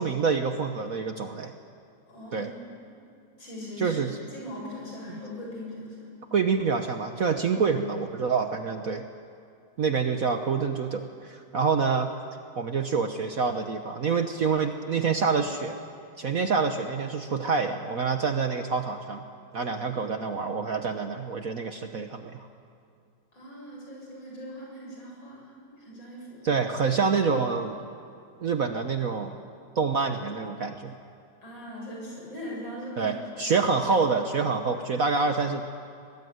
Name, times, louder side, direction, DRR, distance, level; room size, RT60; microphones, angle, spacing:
voice 1, 0.0-1.5 2.3-2.5 3.8-4.2 6.3-9.0 9.8-12.1 12.6-15.8 16.2-19.2 19.5-22.5 26.4-27.8 28.4-29.4 29.7-30.9 33.0-35.6, right 5 dB, 50° right, 6 dB, 1.3 m, -27 dB
voice 2, 2.1-2.8 3.4-4.0 4.3-6.0 23.3-25.5 25.8-26.4 31.4-33.6, left 1 dB, 65° left, -3 dB, 8.4 m, -40 dB
24.5 x 19.5 x 9.4 m, 2.4 s
omnidirectional pair, 2.2 m